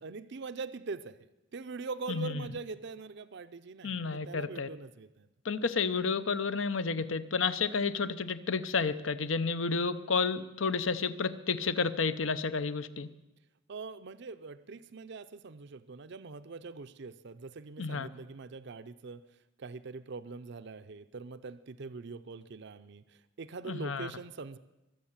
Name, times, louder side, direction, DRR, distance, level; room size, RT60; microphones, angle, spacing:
voice 1, 0.0-1.2 1.5-5.3 13.7-19.2 19.6-24.6, right 4 dB, 60° right, 12 dB, 0.6 m, -43 dB
voice 2, 2.1-2.5 3.8-4.7 5.4-13.1 17.8-18.1 23.7-24.1, left 4 dB, 70° left, 13 dB, 0.7 m, -31 dB
22.5 x 7.7 x 7.3 m, 1.0 s
head